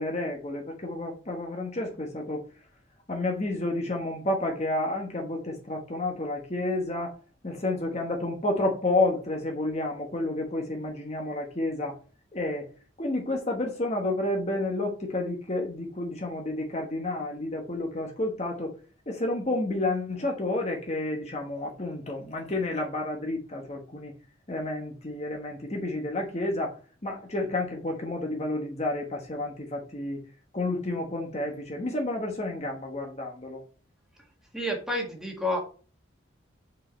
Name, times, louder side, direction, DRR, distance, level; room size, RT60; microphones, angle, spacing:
voice 1, 0.0-2.4 3.1-7.1 7.4-12.0 12.3-12.7 13.0-18.7 19.1-24.1 24.5-30.2 30.5-33.6, left 2 dB, 35° left, 1 dB, 1.2 m, -30 dB
voice 2, 34.5-35.6, left 1 dB, 5° right, 1 dB, 1.7 m, -29 dB
5.5 x 4.8 x 4.3 m, 0.36 s
head